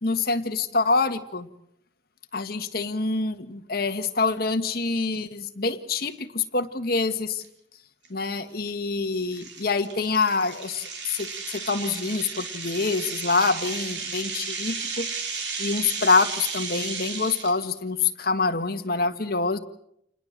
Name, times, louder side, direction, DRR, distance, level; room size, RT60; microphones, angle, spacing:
voice 1, 0.0-1.5 2.3-7.4 8.1-15.1 15.6-19.6, left 4 dB, 55° left, 7 dB, 1.7 m, -26 dB
sound 1, 7.4-7.5 8.1-8.2 8.7-8.8 9.3-17.6, right 5 dB, 80° right, 4.4 m, -34 dB
28.5 x 20.5 x 7.5 m, 0.75 s
head